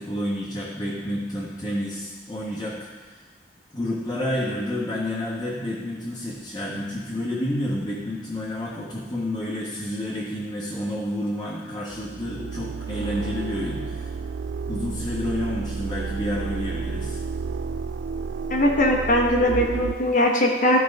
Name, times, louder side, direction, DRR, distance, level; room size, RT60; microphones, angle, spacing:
voice 1, 0.0-3.2 3.7-14.1 14.7-17.2, left 1 dB, 20° left, -8 dB, 1.3 m, -30 dB
sound 1, 11.9-19.9, right 5 dB, 75° right, 0.4 m, -31 dB
voice 2, 18.5-20.8, left 1 dB, 50° left, 0 dB, 1.0 m, -20 dB
13.0 x 4.6 x 5.3 m, 1.4 s
head